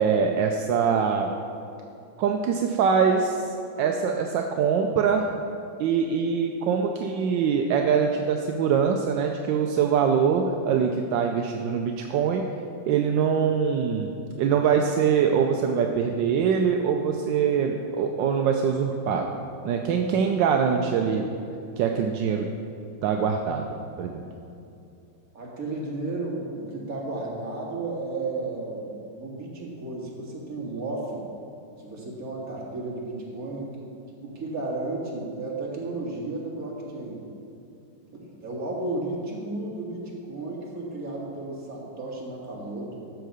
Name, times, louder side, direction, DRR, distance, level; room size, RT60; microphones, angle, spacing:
voice 1, 0.0-1.3 2.2-3.4 3.8-5.2 5.8-12.5 12.9-14.1 14.4-19.3 19.6-21.2 21.8-22.5 23.0-23.7 24.0-24.2, right 6 dB, 80° right, 3 dB, 1.3 m, -23 dB
voice 2, 25.3-31.2 31.8-33.8 34.2-37.2 38.1-43.0, right 2 dB, 50° right, -3 dB, 2.2 m, -33 dB
12.5 x 4.7 x 6.5 m, 2.6 s
omnidirectional pair, 2.1 m